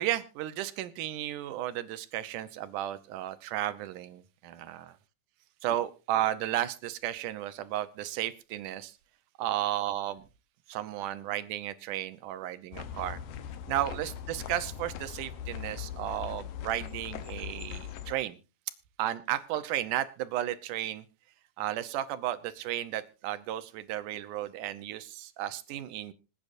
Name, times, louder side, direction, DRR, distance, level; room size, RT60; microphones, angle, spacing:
voice 1, 0.0-4.9 5.6-9.0 9.4-10.2 10.7-13.2 13.7-18.4 19.0-21.1 21.6-26.1, right 13 dB, 75° right, 12 dB, 2.3 m, -33 dB
sound 1, 12.7-18.1, left 9 dB, 90° left, 2.7 m, -40 dB
26.0 x 8.8 x 2.6 m, 0.30 s
omnidirectional pair, 3.8 m